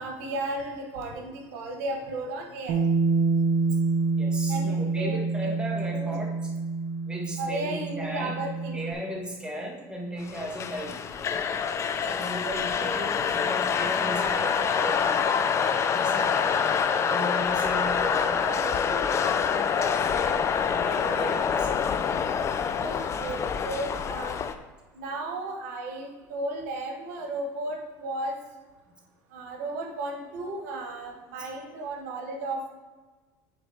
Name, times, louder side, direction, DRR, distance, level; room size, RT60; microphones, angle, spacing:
voice 1, 0.0-2.8 4.5-5.5 5.9-6.2 7.4-8.8 10.9-11.0 12.4-13.1 16.0-16.5 20.2-20.4 22.8-24.4 24.9-28.3 29.3-32.7, right 2 dB, 85° right, 3 dB, 1.1 m, -34 dB
Bass guitar, 2.7-8.9, right 4 dB, 70° right, 0.6 m, -27 dB
voice 2, 4.2-6.3 7.0-8.3 8.7-11.3 12.0-13.1 13.3-15.2 15.9-16.5 17.0-20.0 20.6-21.9, right 1 dB, 10° right, -2 dB, 1.6 m, -36 dB
sound 1, 10.3-24.5, left 7 dB, 35° left, 0.5 m, -26 dB
9.8 x 4.1 x 3.5 m, 1.3 s
supercardioid pair, 105°, 8 cm